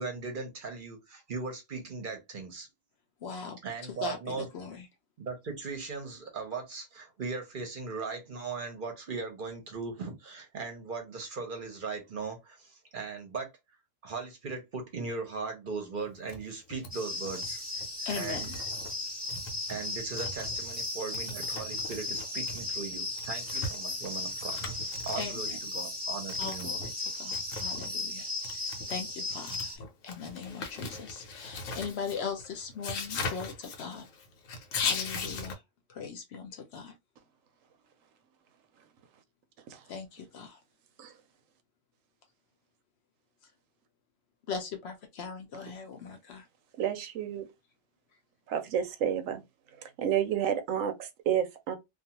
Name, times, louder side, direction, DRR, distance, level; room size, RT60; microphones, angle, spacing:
voice 1, 0.0-2.7 3.6-4.5 5.2-13.5 14.0-17.6 18.1-18.5 19.7-24.6 25.1-26.7, right 4 dB, 50° right, 0.7 m, -38 dB
voice 2, 3.2-3.6 4.0-4.8 18.0-18.6 23.1-23.2 25.2-25.4 26.4-34.1 34.8-35.6 35.9-36.9 39.9-40.6 44.5-46.4, left 5 dB, 60° left, 0.8 m, -40 dB
sound 1, 16.0-16.4 16.7-16.9 17.2-17.5 17.8-18.9 19.3-20.9 21.1-25.5 26.3-27.9 28.3-35.5, left 4 dB, 85° left, 1.1 m, -39 dB
sound 2, 16.9-29.8, left 2 dB, 10° right, 0.7 m, -36 dB
voice 3, 46.8-47.5 48.5-49.4 49.8-51.8, right 9 dB, 85° right, 1.0 m, -30 dB
2.4 x 2.3 x 2.8 m
omnidirectional pair, 1.3 m